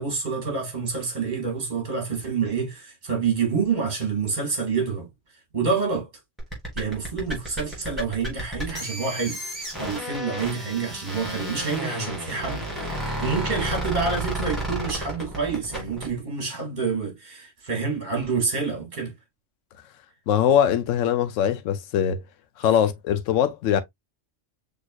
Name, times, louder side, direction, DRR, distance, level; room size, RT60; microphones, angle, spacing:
voice 1, 0.0-5.1 5.5-6.1 6.7-9.4 9.8-19.1, right 5 dB, 40° right, 2.2 m, -27 dB
sound 1, 6.4-16.1, right 1 dB, ahead, 3.5 m, -32 dB
voice 2, 20.3-22.2 22.6-23.8, left 9 dB, 85° left, 1.0 m, -22 dB
6.3 x 3.0 x 2.3 m
omnidirectional pair, 1.3 m